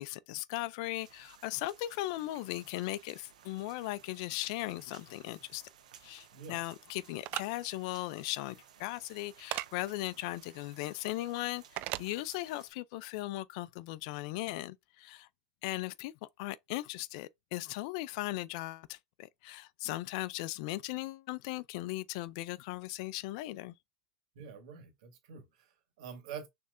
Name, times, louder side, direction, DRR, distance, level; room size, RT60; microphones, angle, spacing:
voice 1, 0.0-5.6 6.0-11.6 12.0-15.3 15.6-16.1 16.4-23.7, left 17 dB, 60° left, 0.4 m, -38 dB
sound 1, 1.0-12.7, right 8 dB, 90° right, 1.0 m, -59 dB
voice 2, 6.3-6.6 24.3-26.5, right 7 dB, 70° right, 1.8 m, -46 dB
sound 2, 7.2-7.5 9.5-9.7 11.8-12.1, right 17 dB, 50° right, 0.4 m, -35 dB
6.4 x 3.3 x 2.6 m
hypercardioid pair, 115°, 4 cm